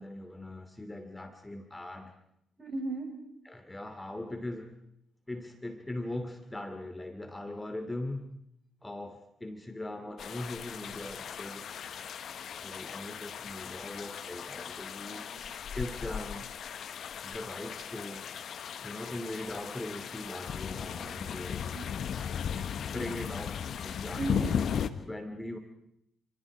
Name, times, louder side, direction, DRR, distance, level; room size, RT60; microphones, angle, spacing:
voice 1, 0.0-2.1 3.5-4.7 5.3-8.3 8.8-11.8 12.6-15.2 15.7-16.5 17.2-18.3 18.8-21.7 22.8-24.5 25.0-25.6, left 1 dB, 15° left, 7 dB, 2.7 m, -40 dB
voice 2, 2.6-3.2 15.0-15.5 20.9-21.2 21.7-22.0 23.2-23.4 24.2-25.0, right 3 dB, 30° right, 4 dB, 7.6 m, -38 dB
sound 1, 10.2-24.9, left 8 dB, 55° left, 1.2 m, -37 dB
28.5 x 26.5 x 5.0 m, 0.75 s
figure-of-eight pair, 40°, 0 cm